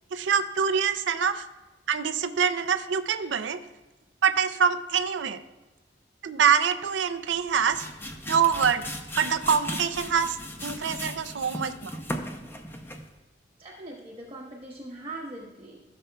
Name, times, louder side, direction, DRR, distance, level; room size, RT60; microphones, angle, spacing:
voice 1, 0.1-1.5 1.9-3.6 4.2-5.4 6.2-7.9 8.3-8.8 9.2-12.0, right 7 dB, 80° right, 9 dB, 0.5 m, -25 dB
sound 1, 7.3-13.2, left 1 dB, 10° left, 0.6 m, -37 dB
voice 2, 13.6-15.8, right 2 dB, 30° right, -4 dB, 1.1 m, -41 dB
15.0 x 6.7 x 2.3 m, 1.1 s
head